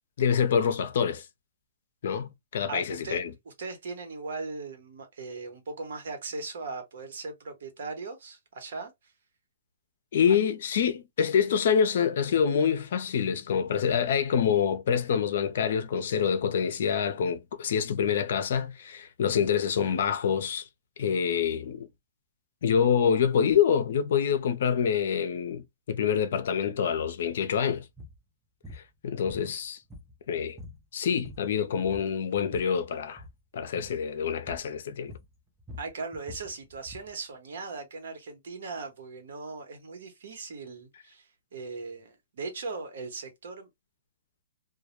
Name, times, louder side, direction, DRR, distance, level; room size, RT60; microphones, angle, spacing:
voice 1, 0.2-1.2 2.0-3.3 10.1-20.7 21.0-21.9 22.6-27.8 28.7-29.8 30.3-30.6 30.9-33.2 33.5-35.2, left 7 dB, 60° left, 0.5 m, -26 dB
voice 2, 2.7-3.2 3.6-8.9 10.3-10.4 35.8-43.7, right 3 dB, 70° right, 1.0 m, -38 dB
sound 1, 27.9-28.2 28.6-28.9 29.3-30.3 30.6-30.8 31.1-31.6 31.8-32.8 33.1-33.4 33.8-34.0 34.5-34.7 35.1-37.1, left 2 dB, ahead, 0.5 m, -45 dB
2.2 x 2.1 x 2.9 m
hypercardioid pair, 165°, 0 cm